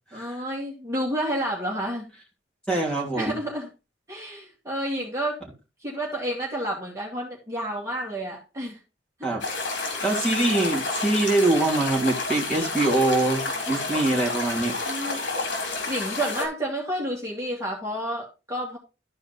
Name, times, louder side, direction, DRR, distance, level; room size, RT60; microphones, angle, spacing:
voice 1, 0.1-2.1 3.2-3.7 4.1-5.4 5.8-8.8 9.9-10.0 14.9-15.2 15.9-18.8, right 1 dB, 15° right, 2.4 m, -30 dB
voice 2, 2.7-3.4 9.2-9.4 10.0-14.7, right 2 dB, 5° left, 3.0 m, -23 dB
sound 1, 9.4-16.5, left 3 dB, 80° left, 3.7 m, -30 dB
13.0 x 4.7 x 4.1 m
head